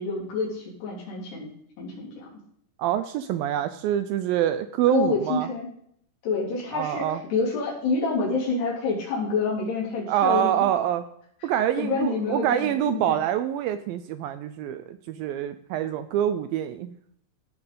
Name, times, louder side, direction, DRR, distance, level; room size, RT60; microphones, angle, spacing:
voice 1, 0.0-1.5 1.8-2.3 4.9-5.7 6.2-10.5 11.8-13.2, left 4 dB, 85° left, -3 dB, 5.6 m, -27 dB
voice 2, 2.8-5.5 6.7-7.2 10.1-11.0 11.4-16.9, right 11 dB, 80° right, 10 dB, 2.1 m, -26 dB
17.0 x 6.0 x 5.4 m, 0.68 s
omnidirectional pair, 4.6 m